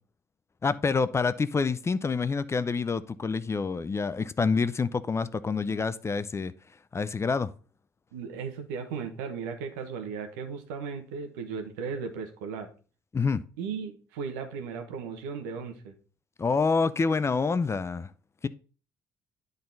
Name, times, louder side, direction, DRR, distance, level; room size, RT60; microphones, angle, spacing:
voice 1, 0.6-6.5 6.9-7.5 13.1-13.4 16.4-18.1, left 4 dB, 25° left, 0.5 m, -27 dB
voice 2, 8.1-12.7 13.6-15.9, right 5 dB, 80° right, 1.2 m, -36 dB
10.5 x 4.0 x 3.9 m
hypercardioid pair, 55°, 10 cm